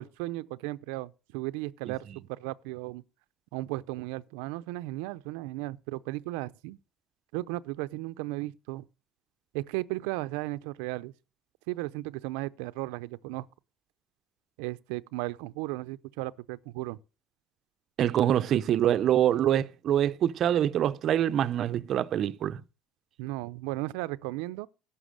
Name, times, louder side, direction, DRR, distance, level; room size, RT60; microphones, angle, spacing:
voice 1, 0.0-3.0 3.5-6.8 7.3-8.8 9.5-11.1 11.7-13.5 14.6-17.0 23.2-24.7, right 19 dB, 85° right, 0.5 m, -35 dB
voice 2, 18.0-22.6, right 11 dB, 40° right, 0.5 m, -25 dB
11.5 x 7.0 x 6.5 m
cardioid pair, 145°, 0 cm